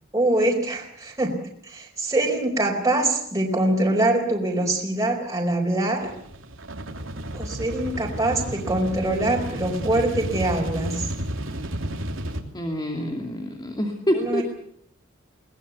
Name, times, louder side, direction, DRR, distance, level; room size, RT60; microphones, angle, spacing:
voice 1, 0.1-1.4 1.6-6.1 7.3-11.1 14.1-14.4, right 1 dB, 15° right, -1 dB, 4.5 m, -24 dB
sound 1, 6.0-12.4, right 1 dB, 75° right, 3.0 m, -32 dB
voice 2, 12.5-14.4, equal, 20° left, 3 dB, 2.6 m, -26 dB
22.0 x 19.5 x 8.3 m, 0.67 s
head